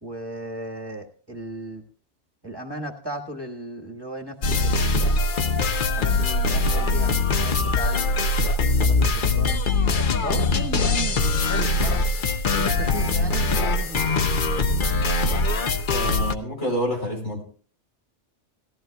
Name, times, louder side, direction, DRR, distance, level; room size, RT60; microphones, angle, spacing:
voice 1, 0.0-1.8 2.4-5.1 5.8-9.6 10.2-12.0 12.5-14.3, right 2 dB, 20° right, 2 dB, 1.5 m, -36 dB
sound 1, 4.4-16.3, left 3 dB, 50° left, 0.9 m, -22 dB
voice 2, 15.9-17.4, equal, 75° left, 0 dB, 4.2 m, -28 dB
18.5 x 14.5 x 2.3 m, 0.40 s
omnidirectional pair, 1.2 m